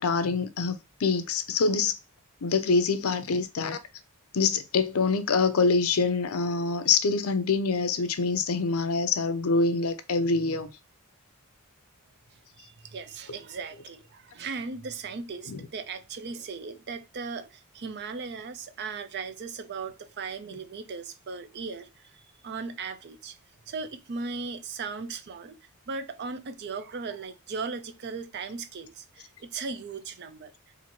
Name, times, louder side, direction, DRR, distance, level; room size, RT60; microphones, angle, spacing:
voice 1, 0.0-1.9 2.4-3.8 4.3-10.7 15.5-15.7, left 4 dB, 70° left, 0.5 m, -25 dB
voice 2, 12.3-23.3 23.7-25.6 25.9-30.5, right 4 dB, 50° right, 0.5 m, -37 dB
4.2 x 2.6 x 3.0 m
head